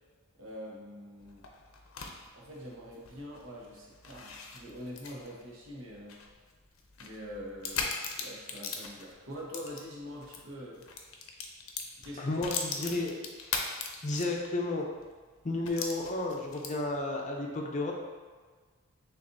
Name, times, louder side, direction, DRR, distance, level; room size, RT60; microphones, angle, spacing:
voice 1, 0.4-1.4 2.3-6.2 7.0-7.9 8.2-10.9 12.0-12.4, equal, 75° right, -3 dB, 1.0 m, -44 dB
sound 1, 1.2-10.4 10.7-14.6 15.0-15.1 15.6-17.0, left 5 dB, 80° left, 0.5 m, -40 dB
voice 2, 12.2-13.2 14.0-14.8 15.4-17.9, left 2 dB, 35° left, 0 dB, 0.6 m, -32 dB
6.5 x 2.6 x 2.6 m, 1.5 s
head